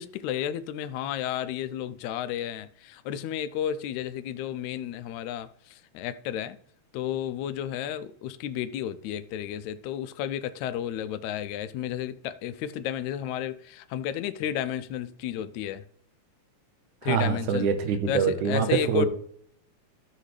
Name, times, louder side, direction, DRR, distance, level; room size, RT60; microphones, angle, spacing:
voice 1, 0.0-5.5 5.9-6.6 6.9-15.8 17.0-17.7 18.1-19.1, left 10 dB, 80° left, 1.9 m, -32 dB
voice 2, 17.0-19.1, right 7 dB, 85° right, 2.5 m, -25 dB
14.0 x 6.7 x 3.3 m
omnidirectional pair, 3.4 m